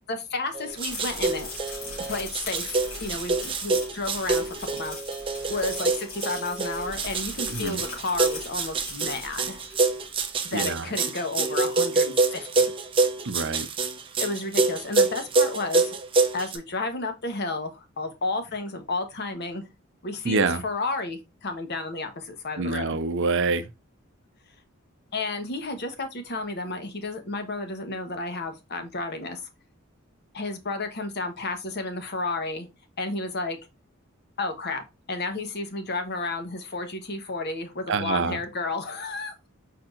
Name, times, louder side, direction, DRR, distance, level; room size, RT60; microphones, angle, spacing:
voice 1, 0.1-1.5 2.1-5.0 5.5-9.6 10.4-12.7 14.2-16.0 16.3-19.7 20.0-23.0 25.1-29.5 30.3-32.7 33.0-33.6 34.4-39.5, left 3 dB, 50° left, 1.0 m, -32 dB
sound 1, 0.5-16.6, right 3 dB, 25° right, 0.7 m, -26 dB
sound 2, 0.7-10.2, left 3 dB, 75° left, 3.0 m, -40 dB
voice 2, 10.5-10.8 13.3-13.7 20.3-20.6 22.6-23.6 37.9-38.4, right 4 dB, 60° right, 0.6 m, -26 dB
4.7 x 4.3 x 2.5 m
head